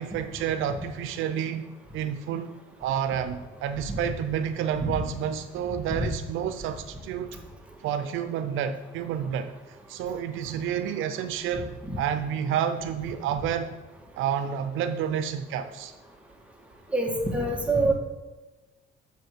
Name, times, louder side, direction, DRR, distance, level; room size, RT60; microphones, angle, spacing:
voice 1, 0.0-7.4 7.8-13.7 14.1-15.9, right 8 dB, 90° right, 9 dB, 0.6 m, -30 dB
voice 2, 16.9-17.9, right 2 dB, 5° right, 0 dB, 1.9 m, -25 dB
6.3 x 5.3 x 6.6 m, 1.2 s
cardioid pair, 90°, 20 cm